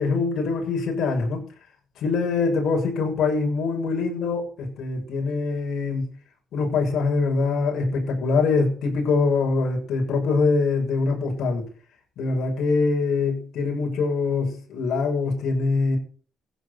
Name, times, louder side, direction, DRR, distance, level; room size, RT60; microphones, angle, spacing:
voice 1, 0.0-1.4 2.0-6.1 6.5-11.7 12.2-16.0, left 4 dB, 75° left, 1 dB, 6.7 m, -23 dB
15.5 x 11.0 x 6.7 m, 0.43 s
cardioid pair, 90°, 0 cm